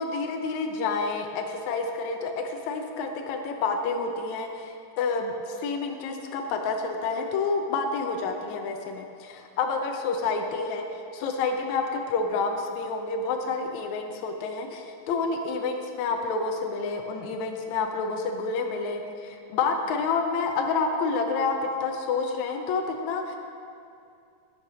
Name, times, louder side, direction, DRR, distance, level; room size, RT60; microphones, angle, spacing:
voice 1, 0.0-10.9 11.1-23.4, left 4 dB, 75° left, 3 dB, 2.1 m, -29 dB
10.5 x 10.0 x 6.2 m, 2.5 s
omnidirectional pair, 3.5 m